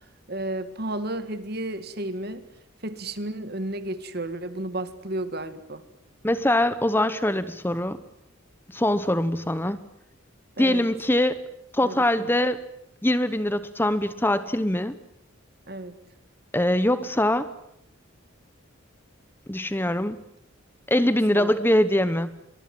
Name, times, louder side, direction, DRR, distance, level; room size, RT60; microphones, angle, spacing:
voice 1, 0.3-2.4 2.8-5.8 10.6-10.8 11.8-12.3 15.7-16.0 21.3-21.6, right 1 dB, 50° right, 11 dB, 1.9 m, -32 dB
voice 2, 6.2-8.0 8.7-9.8 10.6-11.4 11.7-12.6 13.0-15.0 16.5-17.5 19.5-20.2 20.9-22.3, left 1 dB, 10° left, 13 dB, 0.9 m, -23 dB
23.5 x 23.0 x 7.7 m, 0.81 s
head